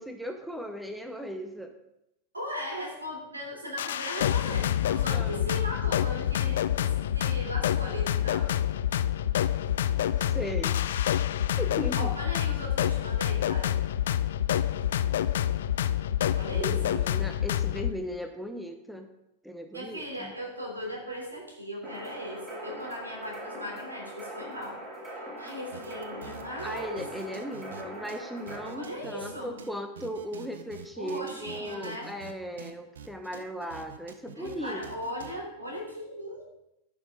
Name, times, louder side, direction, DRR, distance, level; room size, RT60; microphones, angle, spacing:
voice 1, 0.0-1.7 5.0-5.5 10.2-10.7 11.0-11.3 11.6-12.1 16.6-19.1 19.4-20.3 26.6-34.8, equal, ahead, 6 dB, 0.8 m, -37 dB
voice 2, 2.3-8.5 11.9-13.7 16.4-17.0 19.7-24.8 25.4-27.0 28.7-29.5 31.0-32.1 34.3-36.4, equal, 80° right, 0 dB, 3.0 m, -38 dB
sound 1, 3.8-17.9, left 11 dB, 60° left, 0.4 m, -27 dB
sound 2, 21.8-28.7, right 1 dB, 25° right, 4.2 m, -41 dB
sound 3, 25.7-27.8 28.1-28.2 28.5-29.3 29.6-29.7 30.0-32.3 32.6-35.3, right 7 dB, 65° right, 0.8 m, -46 dB
14.5 x 6.2 x 3.7 m, 0.86 s
figure-of-eight pair, 90°, 0 cm